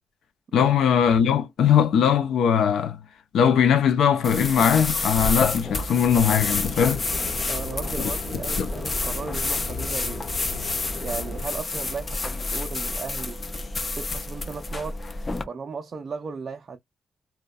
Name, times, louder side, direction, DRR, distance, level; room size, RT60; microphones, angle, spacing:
voice 1, 0.5-3.0 3.3-7.0 8.6-8.7, left 8 dB, 85° left, 0.5 m, -20 dB
sound 1, 4.2-15.4, left 3 dB, 25° left, 0.4 m, -29 dB
sound 2, 6.0-11.4, left 2 dB, 50° left, 0.8 m, -36 dB
voice 2, 7.5-10.3 11.0-13.4 14.0-15.0 15.5-16.8, right 5 dB, 40° right, 0.3 m, -35 dB
2.6 x 2.1 x 2.2 m
wide cardioid pair, 160°, 0 cm